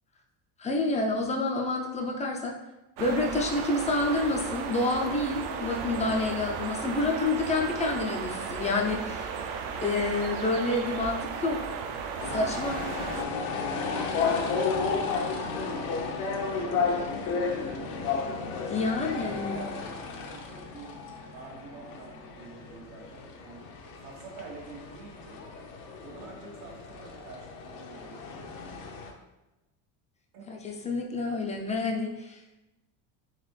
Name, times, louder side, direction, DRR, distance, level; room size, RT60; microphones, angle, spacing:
voice 1, 0.6-2.6 3.0-9.3 9.8-11.6 12.3-12.8 18.7-19.6 30.5-32.4, left 2 dB, 15° left, 1 dB, 0.4 m, -28 dB
sound 1, 3.0-13.2, right 6 dB, 60° right, 0.6 m, -35 dB
voice 2, 5.6-6.6 12.9-18.2 18.9-21.0 21.3-23.6 24.0-25.4 26.0-28.3 30.3-30.6, right 3 dB, 90° right, -2 dB, 1.3 m, -47 dB
sound 2, 12.2-29.1, left 4 dB, 70° left, 0.8 m, -33 dB
4.0 x 3.4 x 3.1 m, 0.99 s
supercardioid pair, 120°, 47 cm